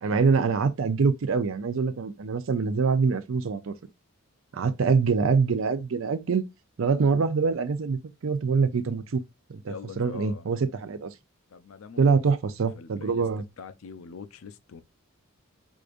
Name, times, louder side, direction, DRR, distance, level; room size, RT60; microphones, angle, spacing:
voice 1, 0.0-3.8 4.5-6.4 6.8-9.2 9.5-11.1 12.0-13.4, right 5 dB, 65° right, 0.5 m, -25 dB
voice 2, 9.7-10.5 11.5-12.2 12.7-13.2 13.6-14.8, left 5 dB, 70° left, 0.5 m, -43 dB
4.7 x 2.5 x 2.5 m
head